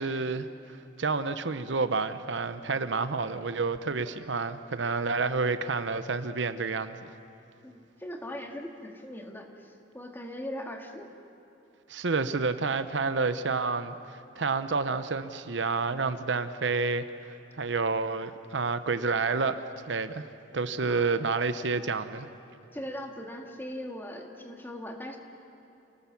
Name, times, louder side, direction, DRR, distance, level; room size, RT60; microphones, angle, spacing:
voice 1, 0.0-7.1 11.9-14.0 14.4-20.2 20.5-22.3, right 4 dB, 80° right, 11 dB, 0.8 m, -29 dB
voice 2, 7.6-11.1 20.9-21.1 22.7-25.2, left 1 dB, 10° left, 2 dB, 1.9 m, -40 dB
29.0 x 19.0 x 7.1 m, 2.9 s
head